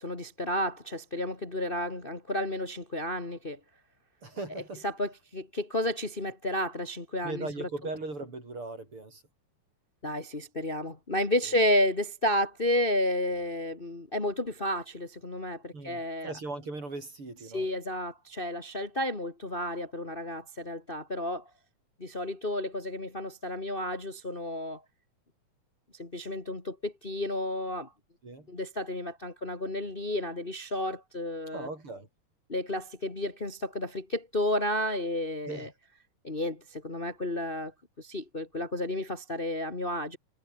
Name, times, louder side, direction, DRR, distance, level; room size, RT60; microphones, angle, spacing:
voice 1, 0.0-3.6 4.5-7.7 10.0-16.3 17.5-21.4 22.0-24.8 26.0-27.9 28.5-31.7 32.5-35.7 36.2-37.7 38.0-40.2, left 1 dB, 20° left, 2.5 m, -31 dB
voice 2, 4.2-4.8 7.2-9.2 15.7-17.7 28.2-28.5 31.5-32.1 35.5-35.7, right 2 dB, 45° right, 7.4 m, -38 dB
omnidirectional pair, 3.5 m